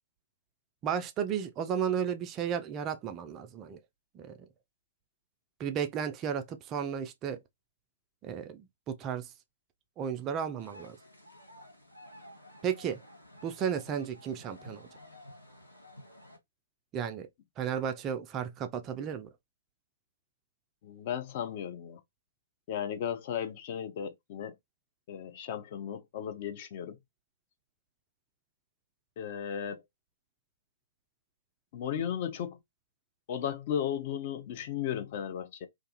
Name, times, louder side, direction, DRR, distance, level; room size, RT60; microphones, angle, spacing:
voice 1, 0.8-3.8 4.2-4.3 5.6-7.4 8.2-9.3 10.0-11.0 12.6-13.0 13.4-14.9 16.9-17.3 17.6-19.3, right 8 dB, 20° right, 0.3 m, -33 dB
sound 1, 10.6-16.4, left 1 dB, 90° left, 1.1 m, -52 dB
voice 2, 20.8-22.0 22.7-24.6 25.1-27.0 29.2-29.8 31.7-32.6 33.3-35.7, left 9 dB, 40° left, 0.5 m, -35 dB
2.4 x 2.3 x 2.7 m
figure-of-eight pair, 120°, 0 cm